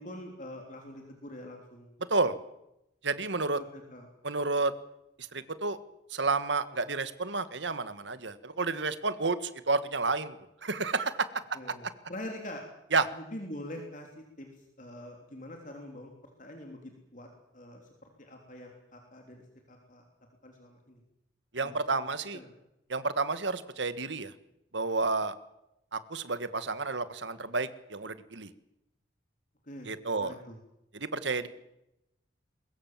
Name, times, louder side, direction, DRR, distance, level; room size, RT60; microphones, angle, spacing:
voice 1, 0.0-1.9 3.5-4.0 11.5-12.6 13.1-14.5 14.8-16.1 16.4-17.3 17.5-20.0 20.4-21.0 21.6-21.7 22.3-22.5 29.6-29.9 30.2-30.6, left 1 dB, 45° left, 2 dB, 3.4 m, -44 dB
voice 2, 3.0-3.6 4.2-4.7 5.3-5.8 6.1-10.3 10.6-11.3 12.9-13.1 21.5-22.4 22.9-24.3 24.7-25.3 25.9-28.5 29.9-30.4 30.9-31.5, right 3 dB, 75° right, 13 dB, 1.6 m, -30 dB
22.5 x 21.5 x 7.5 m, 0.85 s
head